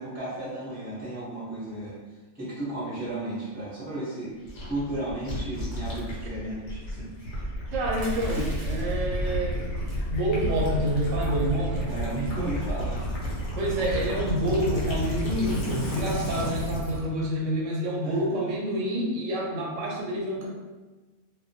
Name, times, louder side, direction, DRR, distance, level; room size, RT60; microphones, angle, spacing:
voice 1, 0.0-2.0 2.3-4.3 4.6-7.1 11.9-13.1 18.0-18.4, right 1 dB, 10° right, -9 dB, 0.7 m, -34 dB
Gurgling / Liquid, 4.5-17.0, equal, 65° left, 1.0 m, -31 dB
voice 2, 7.7-9.7 10.1-11.9 13.5-20.5, right 1 dB, 90° right, -2 dB, 0.9 m, -28 dB
sound 1, 7.9-9.0 9.8-10.1 10.5-10.6 10.8-11.1 11.6-11.9, right 1 dB, 55° right, 0.5 m, -44 dB
2.2 x 2.2 x 2.6 m, 1.2 s
omnidirectional pair, 1.3 m